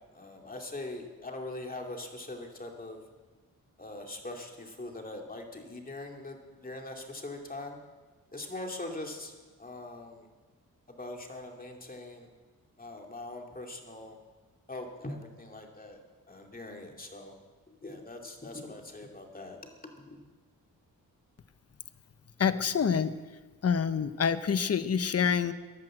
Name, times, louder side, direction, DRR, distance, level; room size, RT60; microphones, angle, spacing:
voice 1, 0.1-3.0 3.8-7.8 8.3-9.3 9.6-10.3 10.9-12.3 12.8-14.2 14.7-16.0 16.3-17.4 17.7-20.3, left 2 dB, 25° left, 2 dB, 2.6 m, -42 dB
voice 2, 22.4-23.1 23.6-25.5, left 7 dB, 45° left, 12 dB, 0.9 m, -27 dB
14.0 x 11.0 x 7.7 m, 1.3 s
cardioid pair, 75°, 35 cm